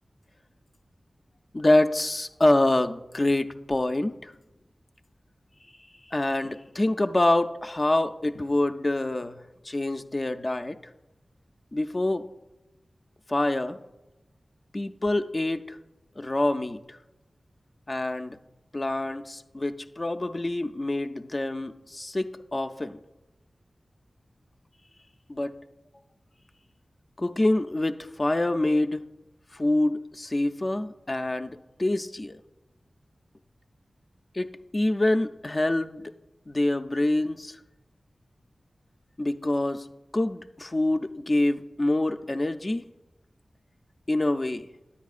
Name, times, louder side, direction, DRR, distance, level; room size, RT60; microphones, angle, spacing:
voice 1, 1.5-4.3 6.1-10.8 11.7-12.2 13.3-13.8 14.7-15.8 16.2-17.0 17.9-18.4 18.7-23.0 25.3-25.6 27.2-29.0 29.5-32.4 34.3-36.1 36.5-37.6 39.2-39.9 40.1-42.9 44.1-44.7, left 1 dB, 40° left, 7 dB, 0.4 m, -26 dB
9.9 x 8.3 x 2.4 m, 0.99 s
cardioid pair, 50°, 0 cm